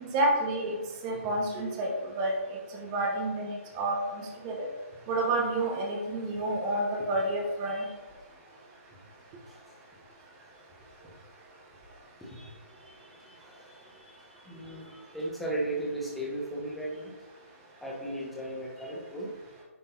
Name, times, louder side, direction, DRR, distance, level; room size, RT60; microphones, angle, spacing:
voice 1, 0.1-0.8 1.0-1.9 2.2-2.3 2.8-4.0 4.4-4.7 5.1-7.9, right 2 dB, 25° right, 0 dB, 0.9 m, -29 dB
voice 2, 12.2-17.1 17.8-19.3, right 1 dB, ahead, -6 dB, 1.0 m, -37 dB
10.0 x 3.6 x 2.7 m, 1.2 s
figure-of-eight pair, 135°, 8 cm